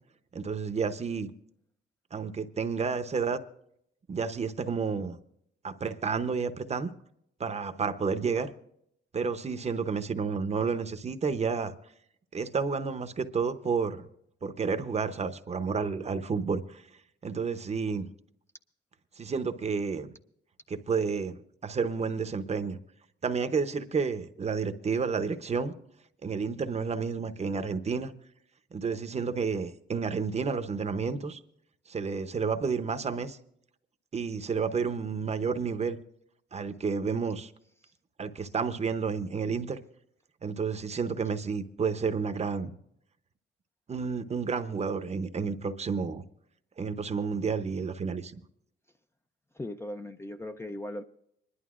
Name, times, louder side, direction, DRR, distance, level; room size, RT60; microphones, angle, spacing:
voice 1, 0.3-1.3 2.1-3.4 4.1-5.2 5.6-6.9 7.4-8.5 9.1-11.7 12.3-14.1 14.4-16.8 17.2-18.1 19.2-20.1 20.7-22.8 23.2-25.7 26.2-28.1 28.7-31.4 31.9-33.4 34.1-36.0 36.5-37.5 38.2-39.8 40.4-42.7 43.9-46.2 46.8-48.3, right 5 dB, 35° right, 0.7 m, -30 dB
voice 2, 49.5-51.0, left 1 dB, 15° left, 0.4 m, -38 dB
27.0 x 11.5 x 2.4 m
wide cardioid pair, 135°, 19 cm